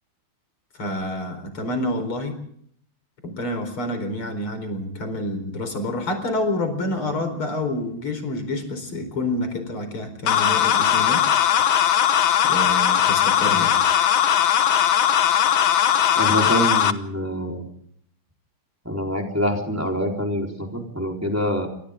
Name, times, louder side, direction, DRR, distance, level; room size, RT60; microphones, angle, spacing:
voice 1, 0.8-2.4 3.2-11.3 12.4-13.8, left 1 dB, 85° left, 7 dB, 5.3 m, -28 dB
sound 1, 10.3-16.9, left 9 dB, 70° left, 1.9 m, -19 dB
voice 2, 16.2-17.6 18.8-21.7, equal, 5° right, 1 dB, 4.1 m, -25 dB
28.5 x 24.5 x 3.8 m, 0.65 s
omnidirectional pair, 2.3 m